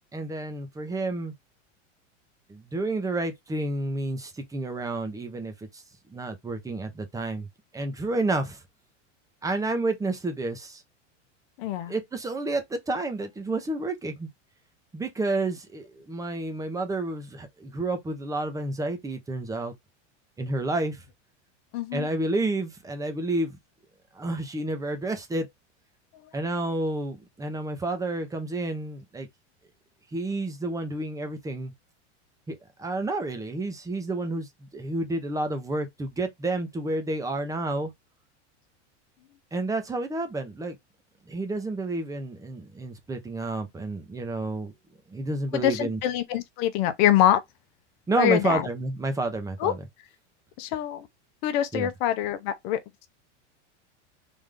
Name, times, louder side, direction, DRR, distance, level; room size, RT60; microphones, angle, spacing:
voice 1, 0.1-1.3 2.5-5.8 6.1-7.5 7.7-8.6 9.4-10.8 11.9-14.3 14.9-19.7 20.4-21.0 21.9-23.6 24.1-25.5 26.3-29.3 30.1-31.7 32.5-37.9 39.5-40.8 41.3-44.7 45.1-46.0 48.1-49.8 51.7-51.9, right 2 dB, 10° right, 0.8 m, -30 dB
voice 2, 11.6-11.9 21.7-22.1 26.1-26.2 45.5-47.4 48.2-48.7 49.6-49.7 50.6-51.1 51.4-52.8, left 11 dB, 55° left, 0.8 m, -24 dB
3.5 x 2.6 x 3.7 m
supercardioid pair, 135°, 36 cm